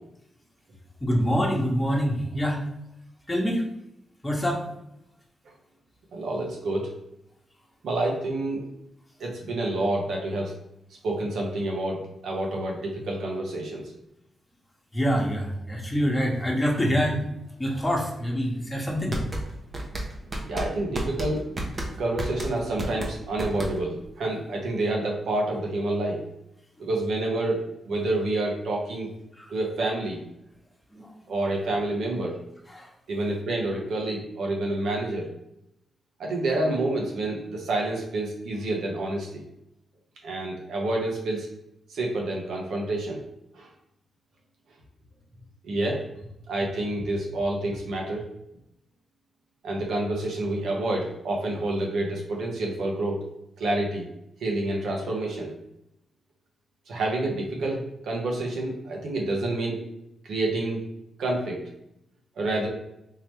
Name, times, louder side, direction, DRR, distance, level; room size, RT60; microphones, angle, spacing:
voice 1, 1.0-2.6 3.3-3.6 4.2-4.7 14.9-17.2 17.6-19.2 29.4-29.5 30.9-31.1 32.7-32.9, equal, 15° left, -2 dB, 1.2 m, -25 dB
voice 2, 6.1-6.9 7.8-8.6 9.2-10.5 11.0-13.9 20.5-21.4 22.0-26.2 26.8-27.6 27.8-29.1 29.5-30.2 31.3-32.4 33.1-35.3 36.2-39.4 40.2-41.5 41.9-43.2 43.5-43.7 45.6-46.0 46.5-48.3 49.6-53.2 53.6-54.1 54.4-55.5 56.9-59.8 60.2-60.8 61.2-61.6 62.4-62.7, right 2 dB, 80° right, -1 dB, 1.0 m, -28 dB
sound 1, 19.1-24.0, right 1 dB, 45° right, 0.8 m, -32 dB
3.8 x 2.9 x 3.0 m, 0.81 s
cardioid pair, 60°, 0 cm